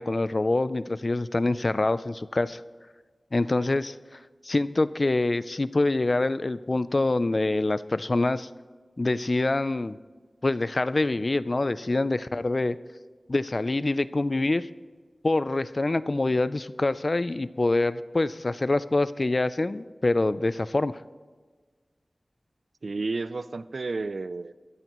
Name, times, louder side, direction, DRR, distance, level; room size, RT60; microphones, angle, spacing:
voice 1, 0.0-2.6 3.3-8.5 9.0-10.0 10.4-12.8 13.3-14.7 15.2-21.0, left 2 dB, 45° left, 15 dB, 0.4 m, -25 dB
voice 2, 22.8-24.5, right 3 dB, 75° right, 15 dB, 0.4 m, -31 dB
22.5 x 13.5 x 3.0 m, 1.4 s
wide cardioid pair, 65°, 0 cm